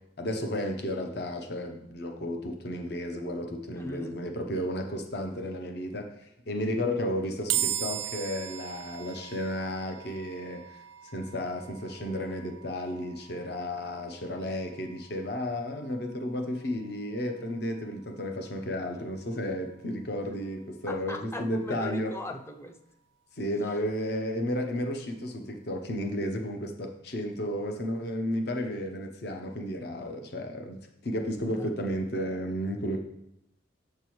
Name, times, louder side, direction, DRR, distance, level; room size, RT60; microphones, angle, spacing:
voice 1, 0.2-6.1 6.5-10.8 11.1-22.1 23.4-30.8 31.0-33.0, left 1 dB, 55° left, 4 dB, 0.8 m, -33 dB
voice 2, 3.7-4.2 20.9-22.8 31.5-31.7, left 1 dB, 15° left, 4 dB, 0.4 m, -39 dB
sound 1, 7.5-20.8, right 11 dB, 85° right, 0.5 m, -40 dB
7.0 x 6.6 x 3.0 m, 0.79 s
head